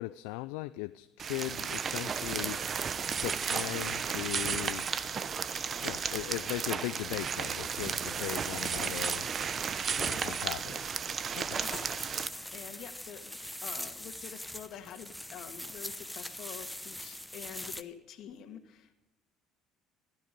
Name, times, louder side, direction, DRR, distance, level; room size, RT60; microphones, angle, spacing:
voice 1, 0.0-2.6 3.2-4.9 5.8-9.3 10.0-10.9 11.4-11.6, left 20 dB, 80° left, 0.4 m, -38 dB
sound 1, 1.2-12.3, right 6 dB, 40° right, 0.9 m, -33 dB
voice 2, 9.9-10.2 10.6-10.8 11.6-11.8 12.5-19.1, left 9 dB, 60° left, 2.0 m, -47 dB
sound 2, 11.6-17.8, left 1 dB, 5° left, 0.9 m, -42 dB
15.5 x 13.0 x 5.3 m
hypercardioid pair, 70°, 0 cm